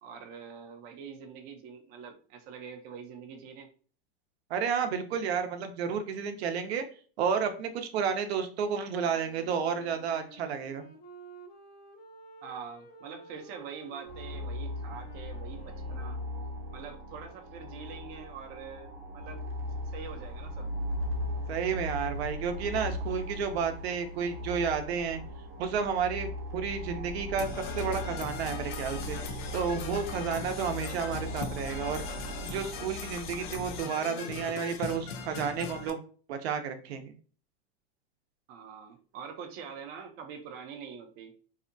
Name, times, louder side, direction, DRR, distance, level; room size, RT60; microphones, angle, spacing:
voice 1, 0.0-3.7 12.4-16.2 16.7-19.4 19.9-20.7 38.5-41.3, right 6 dB, 30° right, 3 dB, 0.4 m, -44 dB
voice 2, 4.5-6.8 7.2-10.9 21.5-25.2 25.6-29.2 29.5-32.0 32.4-36.0 36.3-37.1, right 6 dB, 80° right, 7 dB, 0.6 m, -31 dB
Wind instrument woodwind instrument, 8.9-17.5, right 1 dB, 80° left, 0.9 m, -52 dB
sound 1, 14.1-33.8, left 1 dB, 50° right, 0.8 m, -38 dB
Percussion / Brass instrument, 27.4-35.9, left 6 dB, 50° left, 0.4 m, -40 dB
2.7 x 2.1 x 2.5 m, 0.41 s
supercardioid pair, 140°, 31 cm